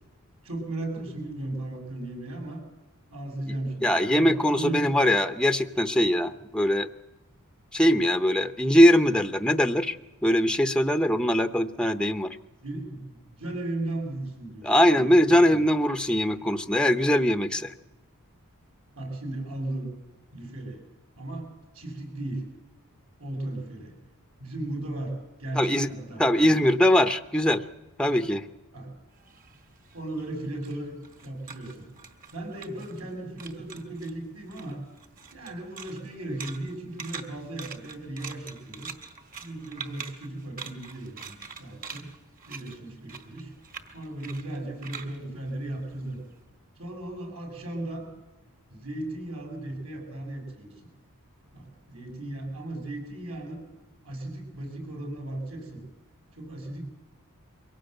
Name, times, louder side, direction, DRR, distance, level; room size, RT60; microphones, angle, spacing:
voice 1, 0.4-2.6 3.1-5.0 12.6-15.7 19.0-19.9 20.3-20.8 21.2-21.5 21.7-22.5 23.2-23.9 24.4-26.6 28.7-28.9 29.9-31.0 31.2-31.9 32.3-34.8 35.3-38.9 39.4-42.1 42.5-43.5 43.9-46.2 46.8-48.1 48.7-50.8 51.5-53.6 54.0-55.8 56.3-56.8, right 1 dB, 70° right, 2 dB, 6.9 m, -36 dB
voice 2, 3.8-6.9 7.7-10.0 10.2-12.3 14.6-17.7 25.5-25.9 26.2-27.6 28.0-28.5, equal, 5° left, 9 dB, 0.7 m, -21 dB
sound 1, 29.2-33.1 33.4-34.1 34.5-46.3, right 6 dB, 40° right, 1.9 m, -44 dB
23.5 x 17.0 x 7.9 m, 1.0 s
head